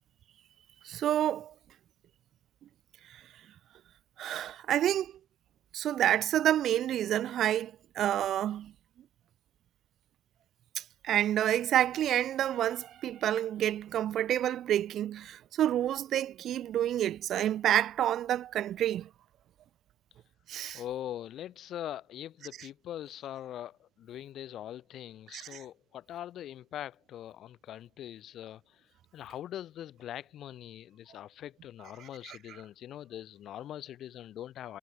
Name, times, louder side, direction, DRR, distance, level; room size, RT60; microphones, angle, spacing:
voice 1, 0.8-1.5 3.1-3.2 4.2-5.1 5.7-8.7 10.8-19.1 20.5-20.8 25.3-25.6 32.2-32.4, right 11 dB, 75° right, 0.5 m, -29 dB
voice 2, 20.7-28.9 29.1-34.8, left 11 dB, 75° left, 5.0 m, -42 dB
cardioid pair, 90°, 0 cm